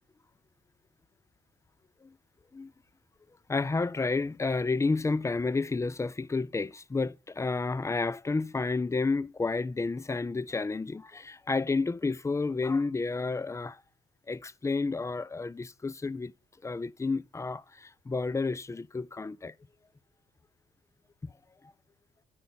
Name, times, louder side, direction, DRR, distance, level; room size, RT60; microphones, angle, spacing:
voice 1, 3.5-13.8 14.3-16.3 16.6-19.5 21.2-21.3, left 3 dB, 15° left, 0.4 m, -30 dB
10.5 x 5.4 x 4.0 m
cardioid pair, 90°, 20 cm